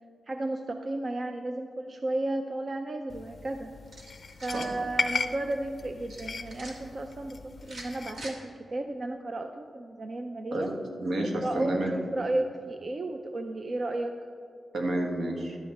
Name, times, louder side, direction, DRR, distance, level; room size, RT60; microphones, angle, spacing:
voice 1, 0.3-3.7 4.4-10.7 11.3-14.1, right 2 dB, 40° right, 5 dB, 0.5 m, -33 dB
sound 1, 3.1-8.3, left 4 dB, 45° left, 0.5 m, -37 dB
sound 2, 3.8-4.8 6.1-6.7 7.6-8.3, right 2 dB, 55° right, 1.7 m, -44 dB
voice 2, 10.5-12.0 14.7-15.6, right 1 dB, 75° right, 1 dB, 1.5 m, -30 dB
11.5 x 7.9 x 4.2 m, 2.4 s
wide cardioid pair, 125°, 0 cm